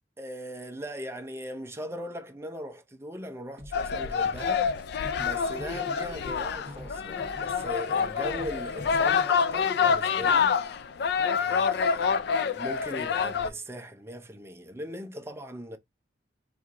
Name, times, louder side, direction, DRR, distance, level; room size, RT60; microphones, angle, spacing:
voice 1, 0.2-4.7 5.2-10.6 11.3-15.8, equal, 15° right, 0.5 m, -39 dB
sound 1, 3.6-10.0, left 1 dB, 30° right, 1.0 m, -46 dB
sound 2, 3.7-13.5, left 6 dB, 60° left, 0.4 m, -27 dB
4.4 x 2.6 x 2.5 m
head